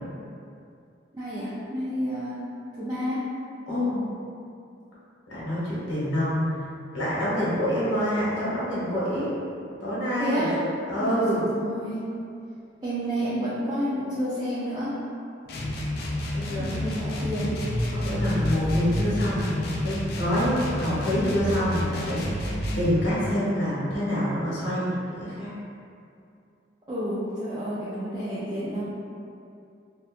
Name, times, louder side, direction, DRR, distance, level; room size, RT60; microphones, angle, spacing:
voice 1, 1.1-2.4 2.8-3.2 10.2-10.6 11.1-11.2 11.5-12.0 12.8-14.9 16.6-17.5 26.9-28.8, equal, 20° right, -11 dB, 0.4 m, -30 dB
voice 2, 3.7-4.0 5.3-6.6 6.9-9.3 9.8-10.5 10.9-11.5 16.3-16.8 17.9-25.5, equal, 90° left, -10 dB, 1.0 m, -26 dB
sound 1, 15.5-23.0, left 1 dB, 55° left, 0.3 m, -29 dB
2.7 x 2.2 x 2.4 m, 2.5 s
head